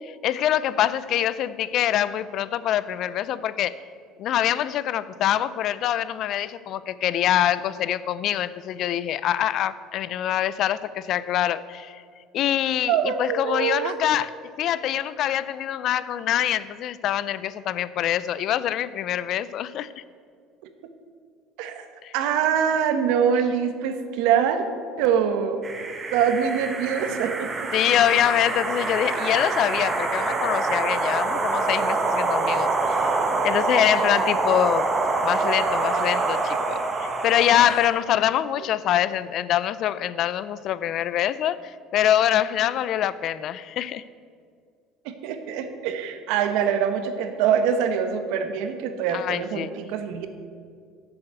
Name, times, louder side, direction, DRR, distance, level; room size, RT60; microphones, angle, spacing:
voice 1, 0.0-3.7 4.2-12.0 12.3-14.3 14.6-19.9 22.0-22.1 27.7-33.2 33.4-34.9 35.2-44.0 49.1-49.7, left 11 dB, 50° left, 16 dB, 0.4 m, -24 dB
voice 2, 12.9-14.0 21.6-21.9 22.1-24.6 25.0-25.6 26.1-27.7 45.0-50.3, right 8 dB, 75° right, 8 dB, 1.0 m, -24 dB
sound 1, 25.6-37.9, right 3 dB, 20° right, 0.9 m, -25 dB
8.1 x 7.0 x 8.0 m, 2.2 s
cardioid pair, 145°, 0 cm